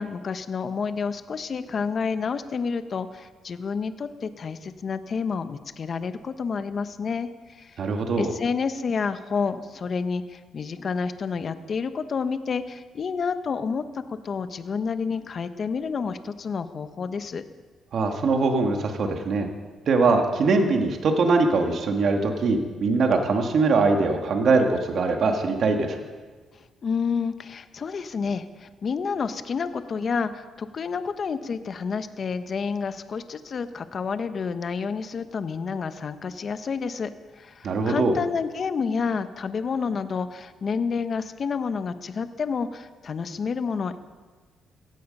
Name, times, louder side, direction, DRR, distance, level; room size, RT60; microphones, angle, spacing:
voice 1, 0.0-7.8 8.2-17.4 26.8-37.1 37.4-44.0, left 5 dB, 45° left, 11 dB, 1.0 m, -29 dB
voice 2, 7.8-8.3 17.9-19.5 19.9-26.0 37.6-38.2, right 3 dB, 60° right, 3 dB, 2.1 m, -22 dB
16.5 x 15.5 x 5.5 m, 1.4 s
cardioid pair, 90°, 0 cm